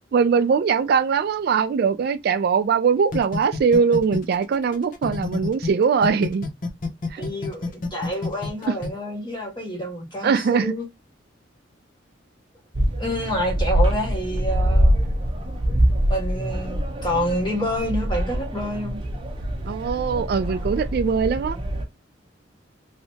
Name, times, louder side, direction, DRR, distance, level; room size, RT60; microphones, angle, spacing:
voice 1, 0.1-6.5 7.1-7.2 8.7-8.8 10.2-10.7 19.6-21.6, right 6 dB, 55° right, 0.3 m, -21 dB
sound 1, 3.1-5.7 6.0-8.9, left 3 dB, 45° left, 0.6 m, -28 dB
voice 2, 7.2-10.9 13.0-14.9 16.1-19.0, equal, 25° left, 1.5 m, -28 dB
sound 2, 12.7-21.8, equal, 30° right, 0.7 m, -24 dB
3.2 x 2.8 x 2.7 m
head